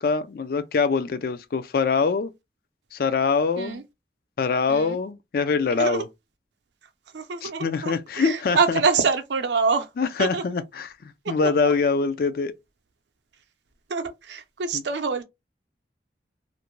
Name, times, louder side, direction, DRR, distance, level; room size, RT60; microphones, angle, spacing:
voice 1, 0.0-2.3 2.9-3.8 4.4-6.1 7.4-8.8 10.0-12.5 14.7-14.8, left 4 dB, 55° left, 0.4 m, -24 dB
voice 2, 5.7-6.1 7.1-9.9 10.2-10.4 11.2-11.7 13.9-15.2, right 5 dB, 80° right, 0.5 m, -26 dB
2.5 x 2.1 x 3.0 m
head